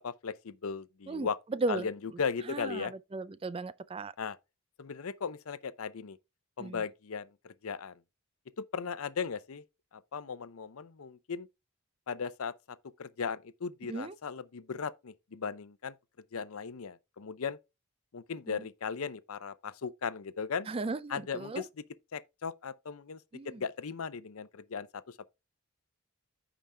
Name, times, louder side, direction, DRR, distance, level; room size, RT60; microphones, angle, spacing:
voice 1, 0.0-1.4 1.7-2.9 4.2-4.4 4.8-6.2 6.6-8.0 8.7-9.6 10.1-11.5 12.1-15.9 16.3-17.6 18.1-20.7 21.1-21.8 22.1-23.2 23.4-25.2, left 6 dB, 75° left, 0.6 m, -37 dB
voice 2, 1.1-1.9 2.5-4.1 6.6-6.8 13.9-14.1 18.5-18.6 20.7-21.6 23.3-23.6, right 3 dB, 25° right, 0.3 m, -36 dB
14.5 x 5.0 x 2.2 m
head